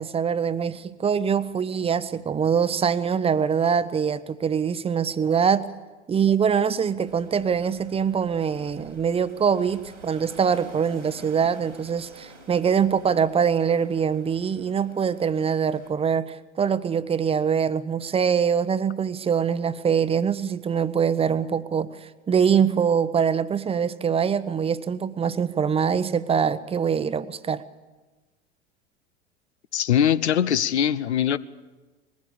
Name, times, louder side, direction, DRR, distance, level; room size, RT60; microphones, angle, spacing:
voice 1, 0.0-5.7 6.1-27.6, right 7 dB, 15° right, 14 dB, 0.8 m, -23 dB
sound 1, 7.0-15.9, right 2 dB, 85° right, 3.1 m, -48 dB
voice 2, 29.7-31.4, left 9 dB, 70° left, 16 dB, 0.8 m, -21 dB
21.5 x 16.0 x 8.6 m, 1.2 s
figure-of-eight pair, 80°, 35 cm